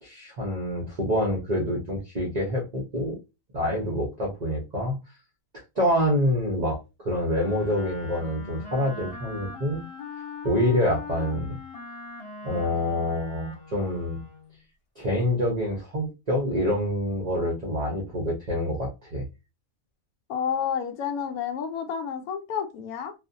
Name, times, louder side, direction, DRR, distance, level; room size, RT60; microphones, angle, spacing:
voice 1, 0.0-3.2 3.5-5.0 5.8-9.8 10.4-11.6 12.4-14.2 15.0-19.2, left 1 dB, 40° right, 0.7 m, -26 dB
Wind instrument woodwind instrument, 7.3-14.6, left 3 dB, 45° left, 1.0 m, -41 dB
voice 2, 20.3-23.1, left 7 dB, 80° left, 1.1 m, -30 dB
2.4 x 2.4 x 2.6 m
omnidirectional pair, 1.6 m